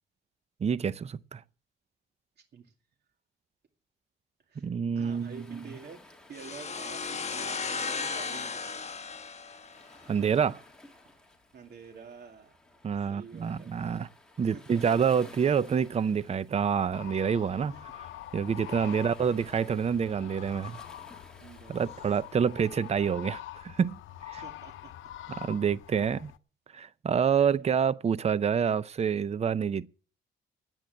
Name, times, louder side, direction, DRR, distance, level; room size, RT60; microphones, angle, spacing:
voice 1, 0.6-1.4 4.6-5.6 10.1-10.6 12.8-14.1 14.4-17.7 18.3-20.8 21.7-24.0 24.3-24.4 25.4-26.3 26.7-29.9, right 7 dB, 30° right, 0.6 m, -27 dB
voice 2, 4.5-8.9 11.5-12.6 13.0-13.7 14.5-14.8 17.7-17.8 18.7-19.2 21.4-22.0 24.3-24.9 25.3-25.4 25.9-26.2 27.5-27.7, right 5 dB, 55° right, 2.3 m, -49 dB
Waves surf, 5.0-22.9, left 2 dB, 5° left, 2.7 m, -56 dB
sound 1, 6.3-10.1, left 5 dB, 35° left, 1.3 m, -35 dB
sound 2, 16.9-26.4, left 13 dB, 75° left, 0.7 m, -45 dB
10.5 x 9.1 x 7.8 m
cardioid pair, 90°, 20 cm